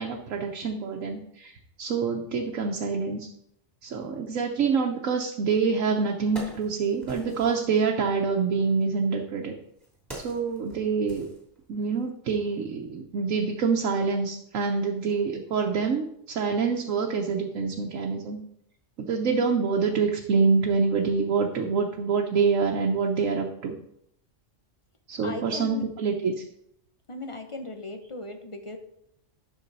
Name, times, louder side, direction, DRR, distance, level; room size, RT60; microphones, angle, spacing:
voice 1, 0.0-1.5 1.8-3.3 3.8-9.6 10.2-11.3 11.7-18.4 19.1-23.8 25.1-26.4, right 5 dB, 85° right, 1 dB, 1.2 m, -26 dB
Wood, 5.5-5.6 6.0-7.7 8.6-12.0 12.3-12.4, right 1 dB, 15° right, 2.8 m, -44 dB
voice 2, 25.2-25.9 27.1-28.8, left 2 dB, 30° left, 5 dB, 0.8 m, -37 dB
11.5 x 6.2 x 4.0 m, 0.74 s
omnidirectional pair, 1.3 m